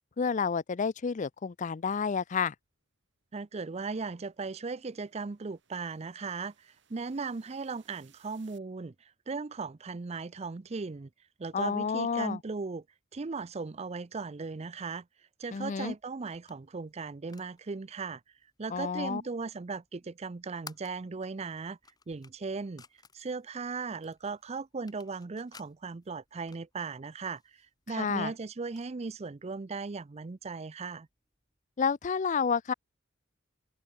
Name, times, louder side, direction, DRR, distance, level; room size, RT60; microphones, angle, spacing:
voice 1, 0.2-2.5 11.5-12.4 15.5-15.9 18.7-19.2 27.9-28.3 31.8-32.7, left 6 dB, 40° left, 0.4 m, -30 dB
sound 1, 2.6-8.6, right 10 dB, 65° right, 6.9 m, -69 dB
voice 2, 3.3-11.1 11.4-12.8 13.1-15.1 15.4-18.2 18.6-21.8 22.1-22.8 23.1-31.1, right 4 dB, 30° right, 0.5 m, -37 dB
sound 2, 15.8-31.6, left 5 dB, 20° left, 2.5 m, -59 dB
open air
head